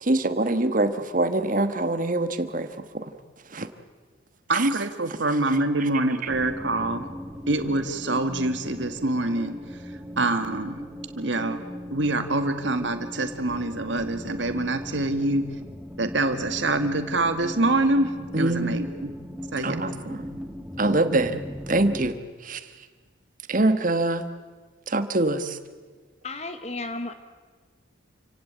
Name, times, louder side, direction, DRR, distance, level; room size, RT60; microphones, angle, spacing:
voice 1, 0.0-3.1 3.5-3.7 4.5-4.7 5.3-5.9 18.3-18.8 19.6-20.3 20.8-21.4 21.7-22.9 23.5-24.3 24.9-25.6, right 2 dB, 40° right, 10 dB, 1.4 m, -25 dB
voice 2, 4.5-7.1 7.5-9.6 10.2-10.9 11.2-11.6 11.9-15.4 16.0-18.1 18.4-19.1 19.5-19.8 21.1-21.2, right 2 dB, 65° right, 8 dB, 2.0 m, -25 dB
sound 1, 6.3-22.1, equal, 5° right, 1.3 m, -38 dB
voice 3, 26.2-27.1, left 2 dB, 35° left, 9 dB, 1.1 m, -33 dB
28.5 x 17.0 x 9.1 m, 1.5 s
head